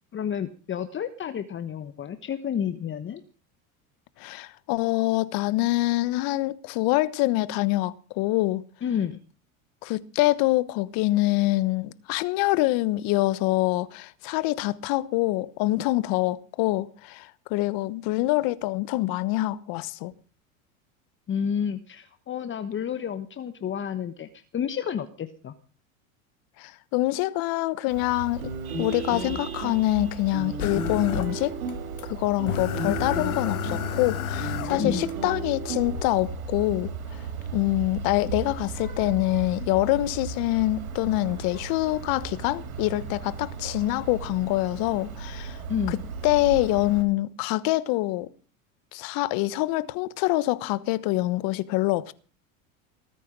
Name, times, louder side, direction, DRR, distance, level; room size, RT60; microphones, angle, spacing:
voice 1, 0.1-3.2 8.8-9.2 21.3-25.5 32.9-33.1 34.8-35.1 45.7-46.0, left 8 dB, 30° left, 1.2 m, -30 dB
voice 2, 4.2-8.6 9.8-20.1 26.6-28.4 28.8-31.6 32.0-37.2 37.5-45.6 45.9-46.0 46.2-48.3 48.9-52.1, left 18 dB, 55° left, 1.3 m, -25 dB
Vehicle horn car horn honking, 27.9-47.0, right 4 dB, 90° right, 4.4 m, -37 dB
sound 1, 28.4-36.5, right 4 dB, 70° right, 5.6 m, -35 dB
sound 2, 30.6-31.7 32.0-32.1 32.5-35.1 35.9-36.1, left 12 dB, 85° left, 1.2 m, -31 dB
20.0 x 9.1 x 6.2 m
hypercardioid pair, 95°, 42 cm